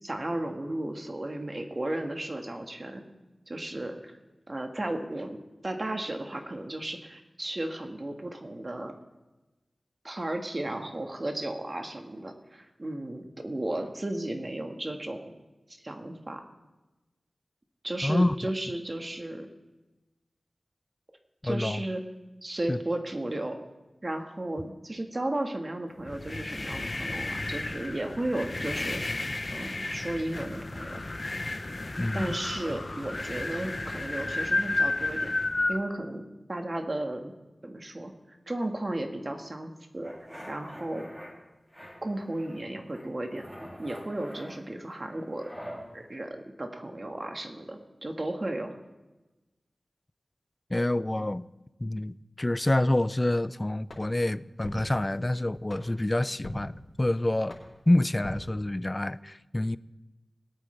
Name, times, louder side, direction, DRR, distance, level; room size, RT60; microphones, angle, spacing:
voice 1, 0.0-3.0 3.5-4.1 4.5-8.9 10.0-15.3 15.8-16.4 17.8-19.5 21.4-22.0 22.4-23.6 24.0-29.0 29.5-31.0 32.1-35.3 35.7-36.2 36.5-37.3 37.6-40.1 40.5-41.1 42.0-43.4 43.8-45.4 45.9-48.7, right 1 dB, 40° right, 1.7 m, -34 dB
voice 2, 18.0-18.4 21.4-21.8 22.7-22.8 32.0-32.4 50.7-51.5 51.8-56.7 57.0-57.6 57.9-59.8, left 1 dB, 25° left, 0.4 m, -27 dB
sound 1, 26.0-35.8, left 2 dB, 45° left, 0.8 m, -32 dB
sound 2, 40.0-41.3 41.7-42.6 42.9-45.8, equal, 5° right, 2.9 m, -45 dB
sound 3, 53.9-59.2, left 1 dB, 70° left, 3.3 m, -45 dB
20.5 x 9.1 x 3.4 m
wide cardioid pair, 60°, 0 cm